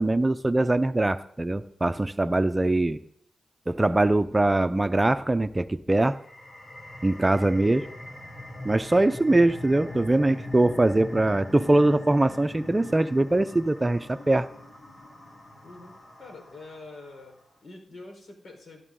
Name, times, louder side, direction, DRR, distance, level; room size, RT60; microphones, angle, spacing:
voice 1, 0.0-3.0 3.7-6.2 7.0-7.9 8.6-14.5, right 2 dB, 25° right, 11 dB, 0.7 m, -22 dB
sound 1, 6.1-17.2, left 1 dB, 45° left, 3.5 m, -42 dB
voice 2, 15.6-17.4 17.6-18.8, left 2 dB, 65° left, 2 dB, 4.6 m, -45 dB
16.0 x 12.0 x 3.9 m, 0.64 s
cardioid pair, 50°, 0 cm